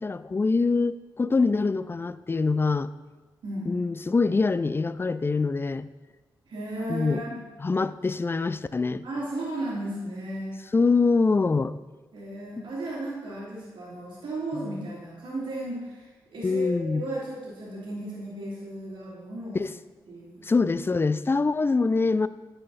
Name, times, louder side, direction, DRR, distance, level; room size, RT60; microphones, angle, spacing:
voice 1, 0.0-2.9 3.7-5.9 6.9-7.2 7.6-9.0 10.7-11.8 12.6-12.7 14.5-14.7 16.4-17.0 19.5-19.7 20.4-22.3, left 4 dB, 25° left, 15 dB, 0.4 m, -24 dB
voice 2, 3.4-3.7 6.5-7.4 9.0-10.6 12.1-19.6 20.1-20.4, right 1 dB, 65° right, -9 dB, 2.7 m, -35 dB
10.0 x 5.6 x 4.1 m, 1.2 s
supercardioid pair, 40°, 9 cm